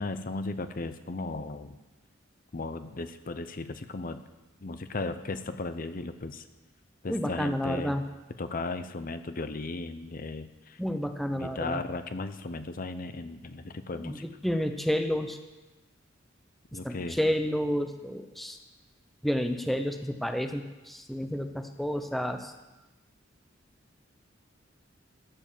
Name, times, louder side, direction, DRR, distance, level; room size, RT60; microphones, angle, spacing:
voice 1, 0.0-1.8 2.5-4.2 4.6-6.5 7.0-8.0 8.4-10.8 11.3-14.2 16.7-17.2, left 3 dB, 45° left, 10 dB, 0.7 m, -36 dB
voice 2, 7.1-8.0 10.8-11.8 13.9-15.4 16.8-18.6 19.2-22.5, equal, ahead, 6 dB, 0.7 m, -30 dB
13.5 x 7.1 x 7.4 m, 1.1 s
head